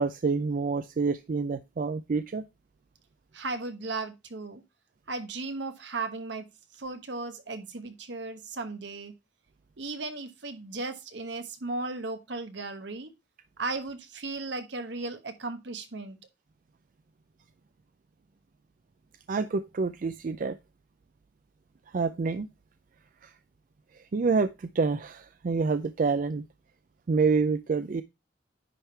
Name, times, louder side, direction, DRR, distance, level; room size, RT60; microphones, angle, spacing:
voice 1, 0.0-2.4 19.3-20.6 21.9-22.5 23.2-23.3 23.9-26.4 27.1-28.0, right 4 dB, 45° right, 0.4 m, -27 dB
voice 2, 3.3-4.6 5.1-6.4 6.8-9.1 9.8-13.1 13.6-16.2, right 3 dB, 70° right, 1.1 m, -36 dB
10.0 x 3.7 x 4.4 m
head